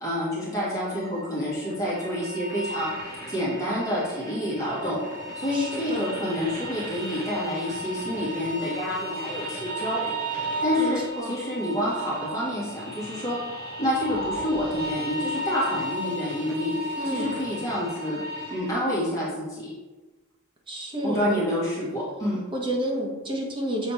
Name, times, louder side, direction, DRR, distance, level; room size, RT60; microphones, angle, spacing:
voice 1, 0.0-2.9 3.3-5.0 5.4-10.1 10.6-13.4 13.8-18.2 18.5-19.7 21.0-22.4, left 1 dB, 15° left, -8 dB, 2.3 m, -28 dB
sound 1, 0.6-18.7, right 1 dB, 40° right, 1.7 m, -35 dB
voice 2, 5.5-6.1 10.8-11.3 17.0-17.4 20.7-21.4 22.5-23.9, right 1 dB, 20° right, -1 dB, 1.2 m, -30 dB
7.1 x 4.1 x 4.6 m, 1.2 s
head